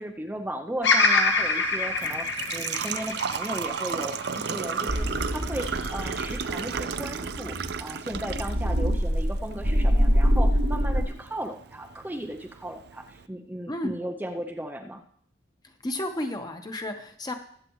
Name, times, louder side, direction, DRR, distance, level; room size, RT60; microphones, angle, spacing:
voice 1, 0.0-15.0, right 1 dB, 10° right, 3 dB, 0.5 m, -36 dB
Bird vocalization bird call bird song, 0.8-5.1 5.6-6.4, left 3 dB, 75° left, 1.7 m, -25 dB
Engine / Trickle dribble / Fill (with liquid), 1.3-13.3, right 6 dB, 60° right, 0.5 m, -35 dB
sound 1, 4.9-11.0, equal, 80° right, 2.1 m, -25 dB
voice 2, 15.6-17.3, left 1 dB, 20° left, 5 dB, 1.1 m, -32 dB
21.5 x 7.5 x 3.1 m, 0.63 s
head